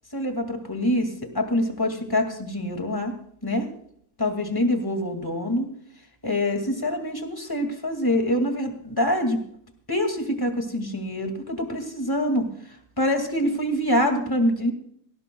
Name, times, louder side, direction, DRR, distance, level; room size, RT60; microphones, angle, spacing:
voice 1, 0.1-3.1 3.4-3.7 4.2-5.7 6.2-9.4 9.9-12.5 13.0-14.7, left 1 dB, 10° left, 4 dB, 1.4 m, -25 dB
18.0 x 18.0 x 2.3 m, 0.66 s
omnidirectional pair, 3.4 m